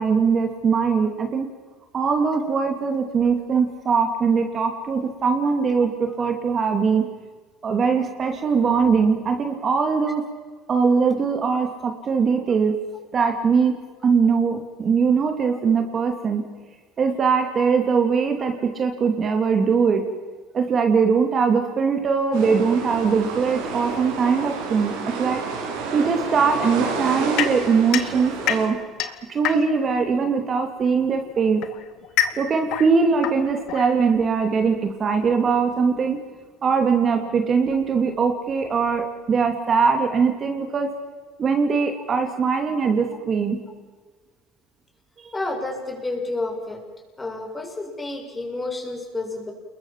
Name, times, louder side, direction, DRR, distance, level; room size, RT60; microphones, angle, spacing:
voice 1, 0.0-1.5 1.9-7.1 7.6-10.2 10.7-12.7 13.1-13.7 14.0-16.4 17.0-20.0 20.5-25.4 25.9-28.8 29.3-31.6 32.4-36.2 36.6-40.9 41.4-43.6 45.2-45.3, right 5 dB, 35° right, 5 dB, 2.7 m, -21 dB
sound 1, 22.3-28.7, right 4 dB, 90° right, 7.1 m, -30 dB
sound 2, 27.4-30.0 31.0-34.4, left 11 dB, 65° left, 2.2 m, -28 dB
voice 2, 45.3-46.8 47.2-49.5, left 2 dB, 15° left, 2 dB, 6.6 m, -30 dB
30.0 x 21.5 x 7.4 m, 1.4 s
cardioid pair, 120°, 0 cm